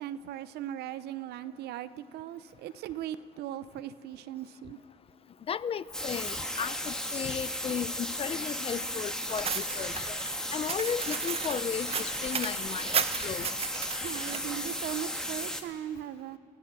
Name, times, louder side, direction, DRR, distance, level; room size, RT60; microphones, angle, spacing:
voice 1, 0.0-4.8 14.0-16.4, right 11 dB, 75° right, 0.7 m, -38 dB
voice 2, 5.5-10.2 10.5-13.5, left 7 dB, 35° left, 0.5 m, -35 dB
sound 1, 5.9-15.6, equal, 5° left, 1.6 m, -35 dB
sound 2, 9.3-14.4, right 7 dB, 35° right, 0.9 m, -34 dB
28.0 x 15.5 x 6.1 m
cardioid pair, 110°, 17 cm